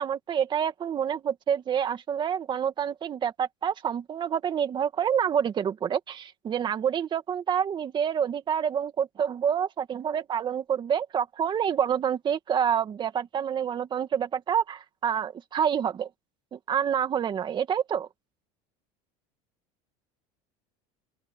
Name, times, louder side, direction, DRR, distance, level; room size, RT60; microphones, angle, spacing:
voice 1, 0.0-16.1 16.5-18.1, right 8 dB, 30° right, 2.1 m, -27 dB
open air
cardioid pair, 145°, 16 cm